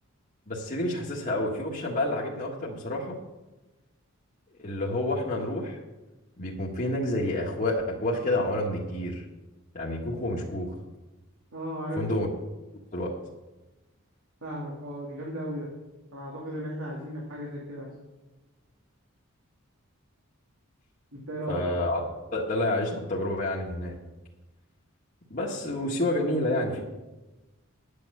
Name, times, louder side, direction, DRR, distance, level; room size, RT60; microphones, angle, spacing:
voice 1, 0.5-3.2 4.6-5.8 6.4-9.2 9.7-10.7 12.0-12.3 12.9-13.1 21.5-22.0 22.3-24.0 25.3-26.8, left 1 dB, 40° left, -5 dB, 1.6 m, -29 dB
voice 2, 11.5-12.0 14.4-15.7 16.1-17.9 21.1-21.6, equal, 85° right, -4 dB, 2.8 m, -35 dB
10.5 x 8.7 x 6.8 m, 1.1 s
head